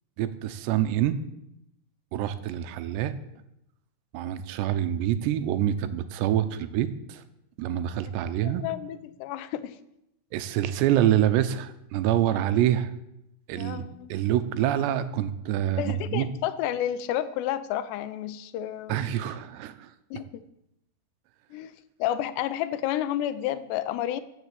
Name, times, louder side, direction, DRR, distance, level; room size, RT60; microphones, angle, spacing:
voice 1, 0.2-1.2 2.1-3.1 4.1-7.2 7.6-8.6 10.3-12.9 13.5-13.8 14.1-16.3 18.9-19.9, right 11 dB, 85° right, 3.0 m, -26 dB
voice 2, 8.4-9.8 13.5-14.1 15.8-19.1 20.1-20.3 21.5-21.7 22.0-24.2, left 12 dB, 85° left, 2.9 m, -31 dB
14.5 x 7.6 x 8.2 m
omnidirectional pair, 4.9 m